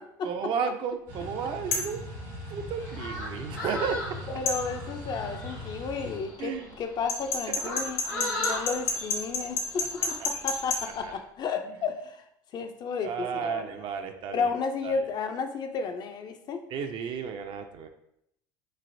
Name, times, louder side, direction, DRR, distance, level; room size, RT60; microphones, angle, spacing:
voice 1, 0.2-2.0 2.5-4.4 6.4-6.7 7.5-7.8 8.1-8.3 9.8-9.9 10.2-10.3 11.0-11.1 13.0-14.5 14.8-15.0 16.7-17.9, right 6 dB, 55° right, 6 dB, 0.4 m, -33 dB
sound 1, 1.1-6.2, equal, 75° right, 0.8 m, -40 dB
sound 2, 1.7-2.0 4.5-4.6 7.1-10.8, left 4 dB, 65° left, 0.8 m, -28 dB
sound 3, 2.8-11.2, left 2 dB, 85° left, 1.1 m, -39 dB
voice 2, 4.3-12.2 12.5-13.8 14.3-16.6, left 5 dB, 45° left, 6 dB, 0.4 m, -33 dB
3.1 x 2.5 x 2.5 m, 0.76 s
supercardioid pair, 85°, 10 cm